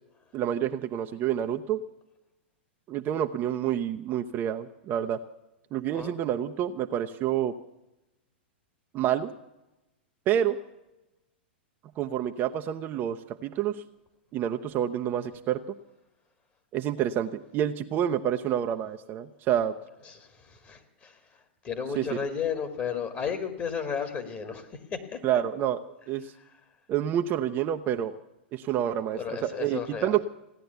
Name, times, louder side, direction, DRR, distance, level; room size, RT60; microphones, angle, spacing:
voice 1, 0.3-1.8 2.9-5.2 5.7-7.5 8.9-9.3 10.3-10.6 12.0-13.8 14.3-15.6 16.7-19.7 22.0-22.1 25.2-25.8 26.1-26.3 26.9-28.2 28.5-30.2, right 10 dB, 35° right, 6 dB, 0.7 m, -28 dB
voice 2, 5.9-6.2 20.1-21.2 21.6-25.2 29.1-30.2, left 6 dB, 30° left, 7 dB, 2.1 m, -33 dB
16.5 x 10.0 x 8.1 m, 0.95 s
hypercardioid pair, 115°, 6 cm